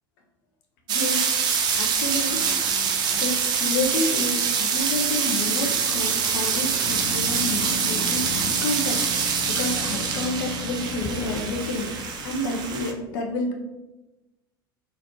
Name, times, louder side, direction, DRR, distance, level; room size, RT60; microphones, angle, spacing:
voice 1, 0.9-2.6 2.8-13.5, left 2 dB, 55° left, 2 dB, 0.7 m, -30 dB
sound 1, 0.9-12.9, right 6 dB, 35° right, 0.5 m, -25 dB
sound 2, 1.6-8.5, equal, 85° right, 0.5 m, -42 dB
sound 3, 6.8-13.0, left 3 dB, 25° left, 0.4 m, -37 dB
4.0 x 3.1 x 2.9 m, 1.1 s
figure-of-eight pair, 75°, 13 cm